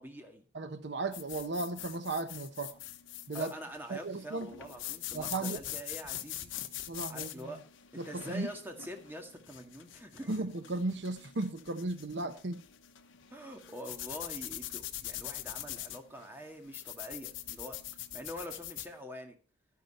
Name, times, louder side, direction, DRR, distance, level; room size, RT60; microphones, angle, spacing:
voice 1, 0.0-0.4 3.3-6.5 7.1-7.6 7.9-10.3 13.3-19.4, equal, 10° right, 1.9 m, -45 dB
voice 2, 0.5-2.8 3.3-3.5 3.9-4.5 5.1-5.6 6.9-7.6 8.0-8.5 10.3-12.6, right 2 dB, 60° right, 0.9 m, -35 dB
sound 1, 1.1-18.9, left 12 dB, 75° left, 1.0 m, -43 dB
12.0 x 10.5 x 4.2 m
head